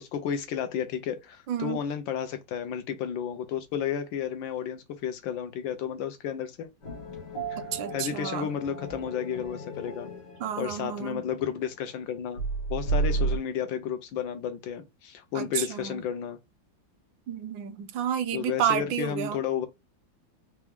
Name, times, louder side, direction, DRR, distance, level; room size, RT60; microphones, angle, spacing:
voice 1, 0.0-6.7 7.5-7.6 7.9-10.1 10.6-12.4 12.7-16.4 18.3-19.7, left 8 dB, 80° left, 1.5 m, -32 dB
voice 2, 1.5-1.8 7.6-8.5 10.4-11.3 15.3-16.0 17.3-19.4, right 9 dB, 85° right, 1.4 m, -31 dB
sound 1, 6.8-12.0 12.4-13.4, right 4 dB, 60° left, 2.5 m, -33 dB
4.7 x 2.3 x 3.4 m
omnidirectional pair, 2.1 m